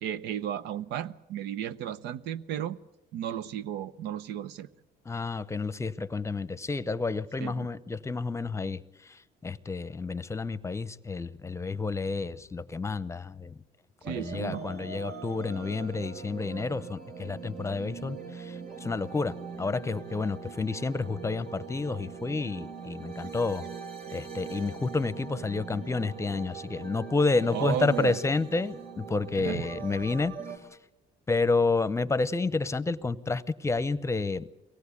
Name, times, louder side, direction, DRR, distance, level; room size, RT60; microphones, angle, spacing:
voice 1, 0.0-2.8 3.1-4.7 7.4-7.7 14.1-14.6 27.5-28.2 29.4-29.7, right 10 dB, 85° right, 0.8 m, -34 dB
voice 2, 5.1-8.8 9.4-13.5 14.1-18.5 18.8-23.7 24.1-30.3 31.3-34.5, left 3 dB, 15° left, 0.8 m, -30 dB
sound 1, 14.0-30.6, right 5 dB, 70° right, 4.1 m, -42 dB
23.5 x 18.0 x 8.4 m
cardioid pair, 110°, 17 cm